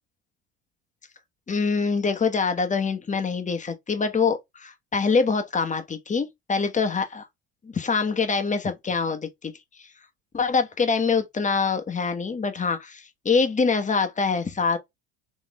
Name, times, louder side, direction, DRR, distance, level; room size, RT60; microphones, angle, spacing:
voice 1, 1.5-7.3 7.6-9.9 10.3-14.8, left 5 dB, 20° left, 1.2 m, -25 dB
4.2 x 3.1 x 3.1 m
hypercardioid pair, 70°, 33 cm